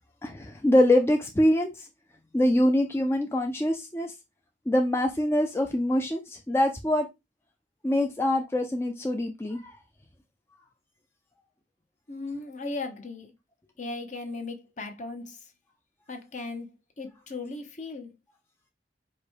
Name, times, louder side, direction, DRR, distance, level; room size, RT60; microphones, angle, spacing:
voice 1, 0.2-1.9 2.3-4.1 4.7-7.1 7.8-9.7, left 1 dB, 15° left, 0.5 m, -24 dB
voice 2, 12.1-13.3 13.8-15.4 16.1-16.7 17.0-18.1, left 3 dB, 45° left, 0.9 m, -37 dB
4.9 x 2.2 x 4.5 m
head